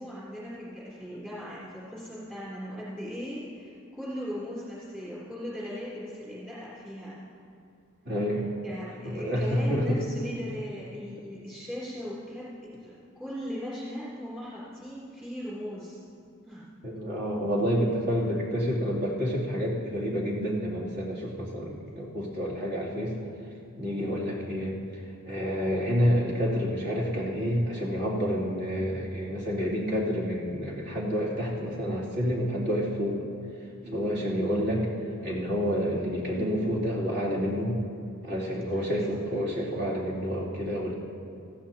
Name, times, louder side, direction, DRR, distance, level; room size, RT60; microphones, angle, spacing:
voice 1, 0.0-7.2 8.6-12.5 12.8-16.0 16.4-16.7 34.0-34.3 38.7-39.0, equal, 10° right, -10 dB, 3.1 m, -38 dB
voice 2, 8.0-8.5 9.0-10.0 16.8-23.2 23.8-33.3 33.8-34.9 35.2-37.8 38.2-40.9, equal, 55° right, -5 dB, 3.0 m, -29 dB
17.5 x 14.5 x 2.9 m, 2.5 s
head